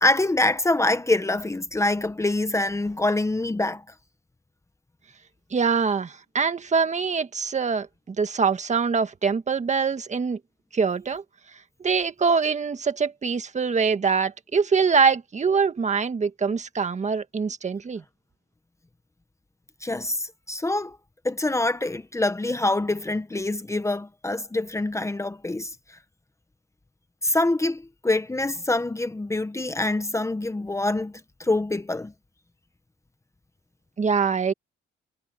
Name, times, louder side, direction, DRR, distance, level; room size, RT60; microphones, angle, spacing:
voice 1, 0.0-3.8 19.8-21.0 21.2-26.0 27.2-32.1, left 2 dB, 15° left, 1.2 m, -25 dB
voice 2, 5.5-10.4 10.7-11.2 11.5-18.0 34.0-34.5, right 5 dB, 35° right, 1.7 m, -24 dB
cardioid pair, 90°, 20 cm